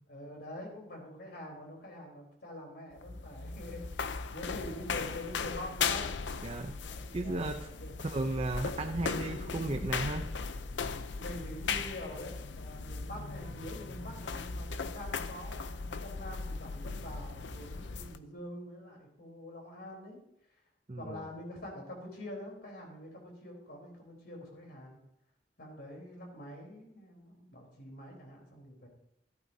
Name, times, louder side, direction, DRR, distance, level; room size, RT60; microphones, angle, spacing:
voice 1, 0.1-4.0 4.3-6.1 6.8-7.9 11.1-20.2 21.0-25.0 25.6-28.9, left 1 dB, 65° left, 0 dB, 3.8 m, -45 dB
sound 1, 2.9-18.2, left 5 dB, 85° left, 0.6 m, -38 dB
voice 2, 6.4-6.7 7.1-7.7 8.0-10.3 20.9-21.2, right 2 dB, 35° right, 5 dB, 0.6 m, -34 dB
14.5 x 12.0 x 2.8 m, 0.80 s
head